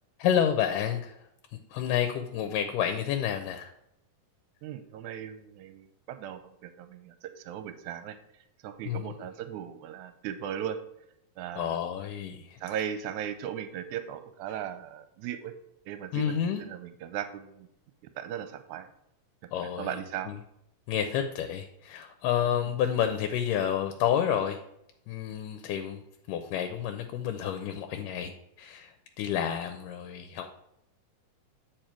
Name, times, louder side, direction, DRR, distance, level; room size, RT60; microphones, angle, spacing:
voice 1, 0.2-1.2 1.7-3.7 8.9-9.3 11.6-12.6 16.1-16.6 19.5-20.0 20.3-20.4 20.9-24.6 25.1-26.0 26.3-28.3 28.6-30.6, left 9 dB, 85° left, 6 dB, 2.3 m, -29 dB
voice 2, 4.6-8.2 8.6-10.8 11.4-11.8 12.6-15.5 15.9-17.7 18.2-18.9 19.8-20.3, right 9 dB, 80° right, 10 dB, 2.0 m, -37 dB
9.0 x 4.8 x 4.5 m, 0.80 s
omnidirectional pair, 3.7 m